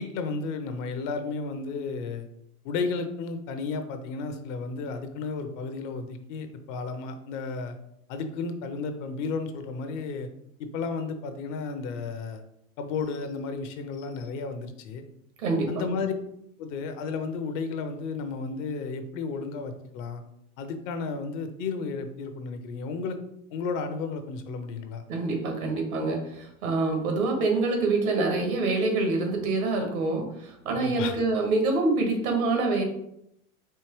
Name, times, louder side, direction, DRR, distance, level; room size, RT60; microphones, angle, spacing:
voice 1, 0.0-2.3 2.6-7.8 8.1-10.3 10.6-12.4 12.8-15.0 15.7-16.1 16.6-20.2 20.6-23.2 23.5-25.0 30.7-31.2, left 4 dB, 55° left, 7 dB, 0.7 m, -33 dB
voice 2, 15.4-16.0 25.1-32.8, right 3 dB, 75° right, 3 dB, 1.4 m, -26 dB
4.5 x 2.8 x 3.0 m, 0.77 s
hypercardioid pair, 100°, 43 cm